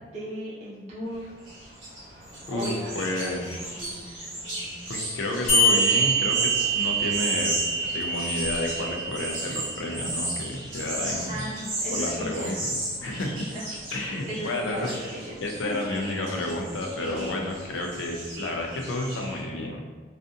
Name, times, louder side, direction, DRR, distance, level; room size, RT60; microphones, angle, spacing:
voice 1, 0.1-1.3 2.5-4.3 11.3-12.6 13.0-13.1 13.5-13.6 13.9-15.4 15.6-15.8 17.0-17.2, equal, 35° right, -8 dB, 0.8 m, -37 dB
sound 1, 1.1-19.4, right 1 dB, 80° right, 0.8 m, -35 dB
voice 2, 2.5-3.6 4.9-11.5 11.9-12.7 13.0-13.5 13.9-14.9 15.4-19.8, left 1 dB, 85° left, 1 dB, 0.4 m, -31 dB
sound 2, 5.5-10.5, right 2 dB, 35° left, 0.9 m, -25 dB
2.5 x 2.4 x 2.4 m, 1.4 s
head